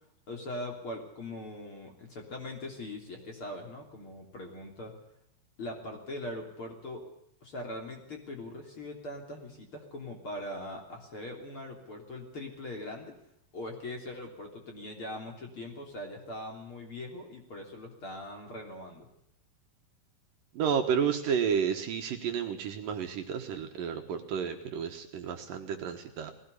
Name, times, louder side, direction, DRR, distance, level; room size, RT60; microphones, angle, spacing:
voice 1, 0.3-4.9 5.6-7.0 7.4-13.1 13.5-19.1, left 1 dB, 35° left, 3 dB, 3.7 m, -41 dB
voice 2, 20.5-26.3, right 7 dB, 65° right, 5 dB, 2.8 m, -31 dB
20.0 x 17.0 x 8.4 m, 0.76 s
omnidirectional pair, 4.6 m